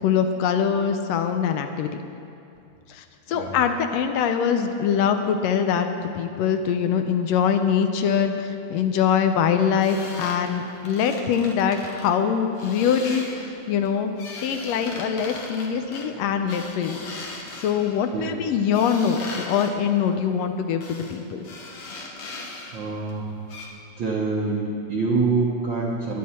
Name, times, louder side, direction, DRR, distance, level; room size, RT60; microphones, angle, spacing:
voice 1, 0.0-1.9 2.9-14.1 14.4-17.1 17.6-21.5, left 7 dB, 75° left, 7 dB, 1.6 m, -23 dB
sound 1, 9.8-12.1 12.5-13.5 13.9-18.1 18.7-19.7 20.8-21.2 21.4-22.8 23.1-23.2 23.5-23.7, left 3 dB, 60° left, 1.9 m, -38 dB
voice 2, 22.7-23.3 24.0-26.2, right 3 dB, 70° right, -3 dB, 1.1 m, -25 dB
21.0 x 7.6 x 4.3 m, 2.6 s
omnidirectional pair, 3.4 m